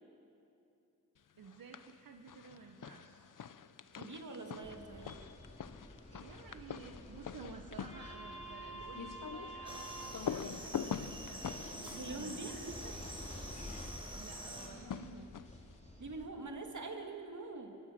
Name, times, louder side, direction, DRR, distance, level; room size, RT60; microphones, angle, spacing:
sound 1, 1.4-2.0 2.3-13.3 14.5-15.7, left 7 dB, 70° left, 0.7 m, -45 dB
voice 1, 1.4-3.3 6.1-13.0 13.6-15.3, right 5 dB, 85° right, 4 dB, 1.3 m, -53 dB
voice 2, 3.9-5.3 11.9-12.6 16.0-17.8, right 3 dB, 60° right, 3 dB, 2.6 m, -44 dB
sound 2, 4.6-16.3, equal, 20° left, 3.8 m, -49 dB
sound 3, 9.6-14.7, right 1 dB, 15° right, 4.9 m, -47 dB
25.5 x 25.0 x 6.2 m, 2.8 s
wide cardioid pair, 95°, 34 cm